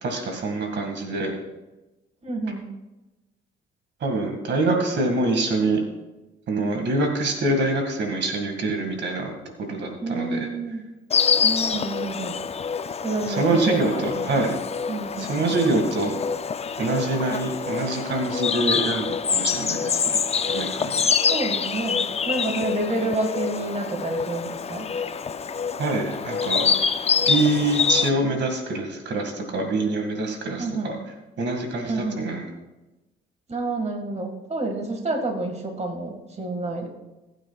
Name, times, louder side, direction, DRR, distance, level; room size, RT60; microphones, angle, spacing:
voice 1, 0.0-1.3 4.0-5.8 6.5-9.3 9.6-10.5 13.3-13.9 14.2-14.5 15.2-16.2 16.8-20.2 20.5-21.0 25.8-26.7 27.3-31.0 31.4-32.5, right 2 dB, 65° right, 3 dB, 2.1 m, -25 dB
voice 2, 2.2-2.7 10.0-10.9 11.4-12.4 13.0-14.6 14.9-15.3 21.2-24.9 30.6-30.9 31.8-32.3 33.5-36.9, right 2 dB, 35° right, 2 dB, 2.0 m, -29 dB
Insect, 11.1-28.1, left 6 dB, 30° left, 0.5 m, -26 dB
20.0 x 9.2 x 2.4 m, 1.1 s
cardioid pair, 90°, 20 cm